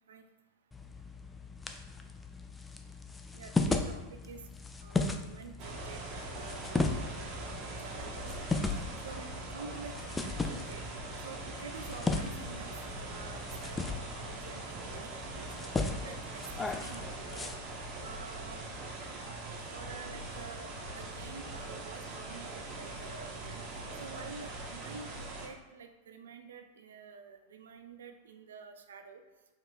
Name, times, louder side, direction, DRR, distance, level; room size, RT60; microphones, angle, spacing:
sound 1, 0.7-17.5, left 3 dB, 10° left, 0.4 m, -37 dB
voice 1, 3.3-4.4 4.8-8.3 9.0-10.8 11.2-13.8 14.1-15.5 16.0-17.6 18.0-18.6 19.7-23.6 24.0-29.2, right 5 dB, 65° right, 7 dB, 0.4 m, -49 dB
sound 2, 5.6-25.5, right 2 dB, 40° right, 0.8 m, -42 dB
4.6 x 4.5 x 2.3 m, 1.1 s
figure-of-eight pair, 90°, 0 cm